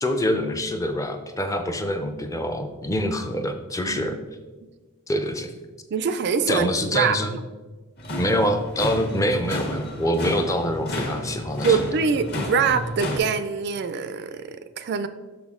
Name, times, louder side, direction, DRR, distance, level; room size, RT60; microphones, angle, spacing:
voice 1, 0.0-4.2 5.1-5.5 6.5-7.4 8.2-11.8, equal, 15° left, 6 dB, 0.5 m, -25 dB
voice 2, 3.8-4.2 5.9-7.4 11.6-15.1, right 5 dB, 50° right, 11 dB, 0.4 m, -24 dB
sound 1, 8.0-13.2, left 1 dB, 50° left, 1.3 m, -31 dB
6.1 x 5.8 x 3.6 m, 1.3 s
head